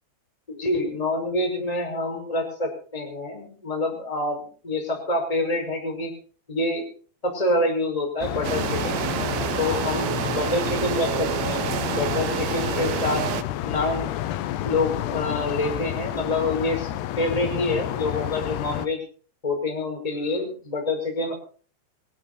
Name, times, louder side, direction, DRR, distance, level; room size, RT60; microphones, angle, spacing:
voice 1, 0.5-6.1 6.5-6.8 7.2-9.0 9.6-13.3 13.6-14.2 14.6-16.9 17.2-19.0 19.4-21.3, left 2 dB, 10° left, 3 dB, 5.3 m, -27 dB
sound 1, 8.2-18.9, left 12 dB, 75° left, 2.8 m, -30 dB
sound 2, 8.4-13.4, right 14 dB, 90° right, 2.0 m, -28 dB
24.0 x 14.0 x 4.2 m, 0.42 s
omnidirectional pair, 5.3 m